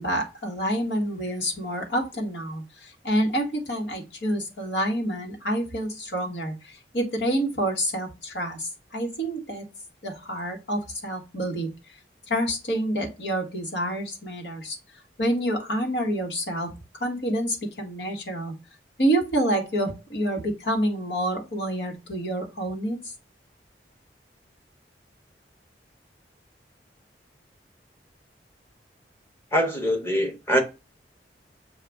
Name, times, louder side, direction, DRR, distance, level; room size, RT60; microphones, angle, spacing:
voice 1, 0.0-9.6 10.0-11.7 12.3-14.8 15.2-16.7 17.0-18.5 19.0-23.1, right 1 dB, 75° left, 1.4 m, -28 dB
voice 2, 29.5-30.6, equal, 15° left, 1.0 m, -23 dB
6.6 x 2.4 x 3.3 m
head